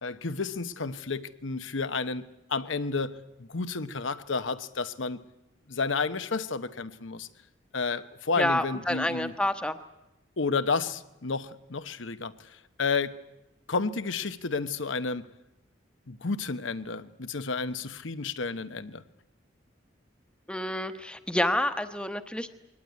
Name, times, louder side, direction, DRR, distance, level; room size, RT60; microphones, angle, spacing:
voice 1, 0.0-5.2 5.7-7.3 7.7-9.3 10.4-13.2 13.7-15.3 16.1-19.0, left 4 dB, 80° left, 1.0 m, -31 dB
voice 2, 8.4-9.8 20.5-22.5, left 1 dB, 5° left, 1.0 m, -28 dB
22.5 x 18.5 x 9.6 m
head